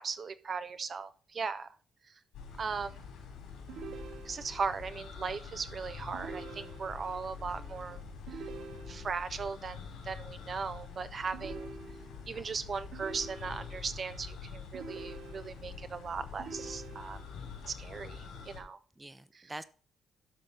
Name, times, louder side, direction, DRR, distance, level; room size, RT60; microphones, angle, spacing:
voice 1, 0.0-1.7 2.1-2.2 2.6-3.0 4.2-8.0 8.3-8.4 8.9-11.7 12.3-17.2 17.7-18.8 19.3-19.5, right 5 dB, 45° right, 12 dB, 0.5 m, -38 dB
sound 1, 2.3-18.6, left 5 dB, 90° left, 3.5 m, -46 dB
sound 2, 3.7-4.7 6.1-7.2 8.3-9.3 11.3-12.3 12.9-13.9 14.7-15.8 16.4-17.4, right 4 dB, 75° right, 1.2 m, -46 dB
voice 2, 7.4-8.0 12.2-12.6 19.0-19.6, right 2 dB, 15° right, 13 dB, 0.7 m, -48 dB
12.0 x 4.0 x 5.7 m, 0.39 s
cardioid pair, 90°, 0 cm